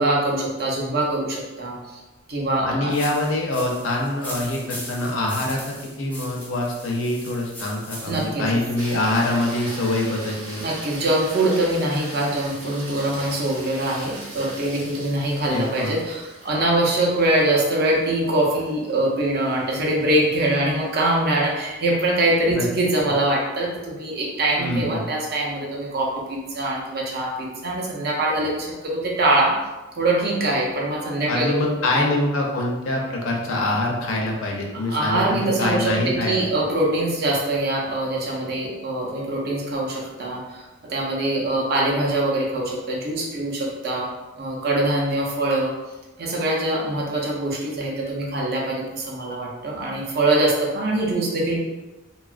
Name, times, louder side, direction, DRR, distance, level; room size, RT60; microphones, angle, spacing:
voice 1, 0.0-2.0 2.3-2.9 8.1-8.5 10.6-29.6 30.0-31.7 34.9-44.1 44.4-45.7 46.2-51.6, right 1 dB, 50° right, -2 dB, 0.5 m, -23 dB
voice 2, 2.6-10.6 15.5-16.0 22.6-22.7 24.6-25.1 31.3-36.4, left 1 dB, 75° left, 0 dB, 0.5 m, -24 dB
sound 1, 2.9-8.4, equal, 10° left, 0.3 m, -39 dB
sound 2, 8.8-21.2 25.6-25.7, right 1 dB, 65° right, 0.9 m, -40 dB
2.7 x 2.3 x 2.4 m, 1.1 s
head